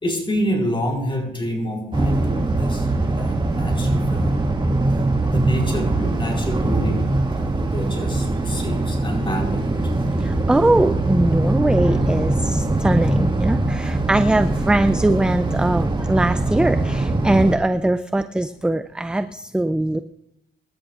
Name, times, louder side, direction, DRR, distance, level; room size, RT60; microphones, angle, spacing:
voice 1, 0.0-4.5 5.3-7.0 7.3-9.7 14.6-14.8, equal, 25° left, 1 dB, 4.7 m, -28 dB
sound 1, 1.9-17.6, right 2 dB, 25° right, 1.8 m, -22 dB
voice 2, 10.1-20.0, right 1 dB, 5° right, 10 dB, 0.5 m, -21 dB
25.0 x 13.0 x 2.5 m, 0.80 s
cardioid pair, 90°, 20 cm